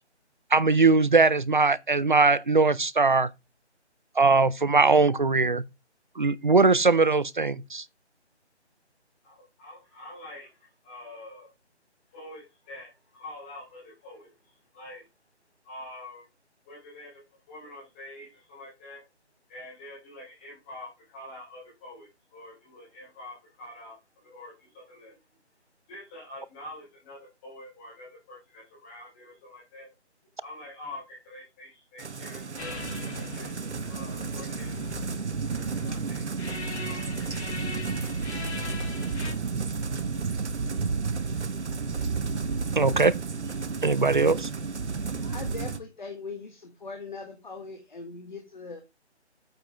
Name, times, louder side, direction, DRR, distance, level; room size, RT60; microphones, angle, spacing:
voice 1, 0.5-3.3 4.2-5.6 6.2-7.8 42.8-43.1 43.8-44.5, right 3 dB, 45° right, 0.4 m, -21 dB
voice 2, 9.2-11.5 12.1-15.0 15.6-16.3 16.6-17.2 17.5-19.0 19.5-25.2 25.9-29.9 30.4-33.6 33.9-35.4 35.6-36.2 36.8-37.3 37.7-38.0, left 1 dB, 10° left, 3.0 m, -46 dB
sound 1, 32.0-45.8, right 4 dB, 75° right, 1.0 m, -32 dB
sound 2, 32.6-39.3, left 2 dB, 70° left, 2.6 m, -39 dB
voice 3, 45.2-48.8, left 4 dB, 40° left, 1.5 m, -40 dB
8.9 x 7.6 x 3.4 m
figure-of-eight pair, 170°, 35 cm